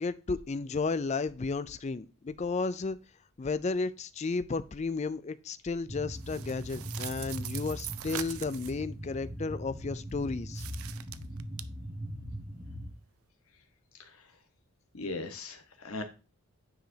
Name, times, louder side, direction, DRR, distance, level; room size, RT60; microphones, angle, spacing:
voice 1, 0.0-3.0 3.4-10.6, left 4 dB, 30° left, 14 dB, 0.3 m, -33 dB
sound 1, 5.9-12.9, equal, 30° right, 2.4 m, -40 dB
sound 2, 6.2-8.8 10.5-11.6, right 13 dB, 75° right, 0.4 m, -42 dB
voice 2, 14.9-16.0, left 2 dB, 75° left, 6 dB, 1.3 m, -39 dB
9.1 x 4.9 x 2.8 m, 0.31 s
head